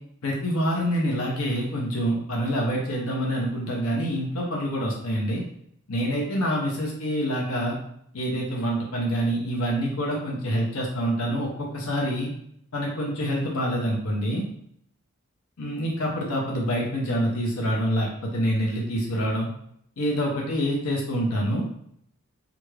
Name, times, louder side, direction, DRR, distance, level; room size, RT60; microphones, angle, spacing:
voice 1, 0.2-5.4 5.9-7.8 8.1-12.3 12.7-14.4 15.6-19.5 20.0-21.6, equal, 80° left, -2 dB, 0.9 m, -26 dB
3.4 x 2.5 x 3.2 m, 0.69 s
head